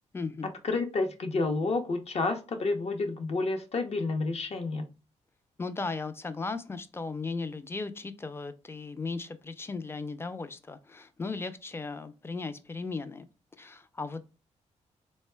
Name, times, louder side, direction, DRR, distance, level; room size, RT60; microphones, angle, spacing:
voice 1, 0.1-0.5 5.6-13.3 13.6-14.2, left 3 dB, 20° left, 0.4 m, -36 dB
voice 2, 0.6-4.9, left 3 dB, 55° left, 0.7 m, -30 dB
3.6 x 2.1 x 3.3 m
cardioid pair, 80°, 13 cm